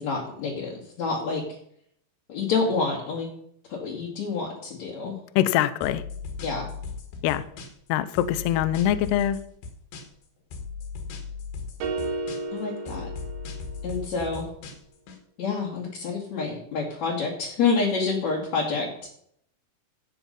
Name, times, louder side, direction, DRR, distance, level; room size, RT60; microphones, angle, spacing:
voice 1, 0.0-1.4 2.3-3.3 3.7-5.2 6.4-6.7 12.5-13.1 13.8-14.5 15.4-18.9, left 4 dB, 45° left, -4 dB, 2.6 m, -28 dB
voice 2, 5.4-6.0 7.2-7.4 7.9-9.4, left 12 dB, 90° left, 14 dB, 2.3 m, -23 dB
sound 1, 5.8-7.9 8.2-10.2 10.5-12.6 12.9-15.2, left 5 dB, 65° left, 3.7 m, -37 dB
sound 2, 11.8-14.1, right 3 dB, 65° right, 2.9 m, -33 dB
15.5 x 8.2 x 5.4 m, 0.67 s
omnidirectional pair, 5.7 m